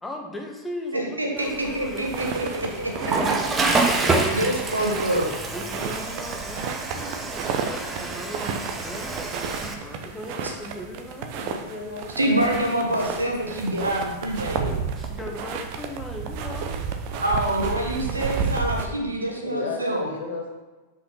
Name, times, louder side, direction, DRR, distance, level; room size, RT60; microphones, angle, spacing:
voice 1, 0.0-2.7 5.5-11.5 15.0-16.8, left 1 dB, 10° left, 2 dB, 1.3 m, -38 dB
voice 2, 0.9-3.4 4.3-5.3 6.5-6.6 12.2-14.7 17.2-20.1, right 1 dB, 80° right, 1 dB, 1.6 m, -26 dB
Water / Toilet flush, 1.4-9.7, right 3 dB, 20° right, 1.1 m, -28 dB
sound 1, 2.0-18.9, right 5 dB, 45° right, 0.9 m, -32 dB
voice 3, 11.4-12.5 18.5-18.6 19.4-20.5, left 3 dB, 60° left, 1 dB, 1.8 m, -34 dB
6.1 x 5.5 x 6.0 m, 1.2 s
figure-of-eight pair, 90°, 0 cm